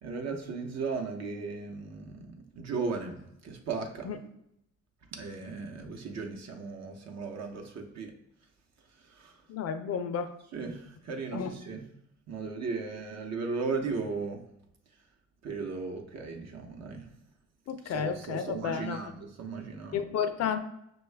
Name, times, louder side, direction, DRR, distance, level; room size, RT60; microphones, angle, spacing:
voice 1, 0.0-4.1 5.1-8.2 9.0-9.3 10.5-11.9 12.3-14.4 15.4-17.1 17.8-20.0, right 4 dB, 60° right, 2 dB, 0.8 m, -36 dB
voice 2, 9.5-10.4 11.3-11.5 17.7-19.1 19.9-20.6, left 7 dB, 55° left, 9 dB, 0.4 m, -32 dB
5.4 x 2.3 x 3.3 m, 0.79 s
cardioid pair, 90°, 30 cm